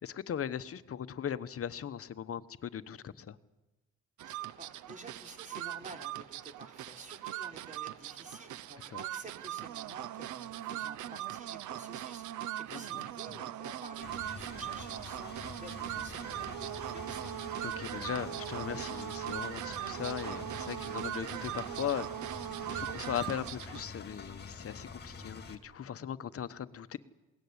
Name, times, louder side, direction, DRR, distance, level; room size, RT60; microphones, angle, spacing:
voice 1, 0.0-3.4 8.9-9.0 12.7-13.0 13.3-13.4 17.6-22.1 22.7-27.0, left 9 dB, 50° left, 13 dB, 1.0 m, -38 dB
voice 2, 4.2-12.3 12.6-17.4, right 2 dB, 25° right, 3 dB, 4.1 m, -51 dB
sound 1, 4.2-23.9, right 12 dB, 75° right, 0.8 m, -40 dB
Engine, 14.0-25.5, left 4 dB, 35° left, 2.6 m, -47 dB
21.5 x 18.0 x 9.7 m, 1.1 s
cardioid pair, 90°, 30 cm